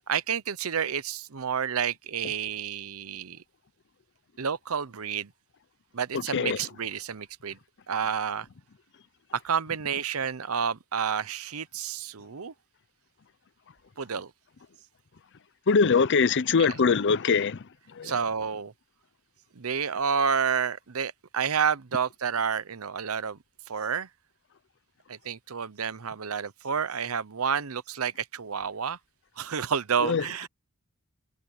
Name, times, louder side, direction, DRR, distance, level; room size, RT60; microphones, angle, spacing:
voice 1, 0.1-3.4 4.4-5.3 5.9-7.6 7.9-8.5 9.3-12.5 14.0-14.3 16.6-16.8 18.0-18.7 19.5-23.4 23.7-24.1 25.1-29.0 29.4-30.5, right 7 dB, 90° right, 0.8 m, -30 dB
voice 2, 15.7-17.6 18.0-18.1 30.0-30.2, left 5 dB, 55° left, 0.6 m, -22 dB
head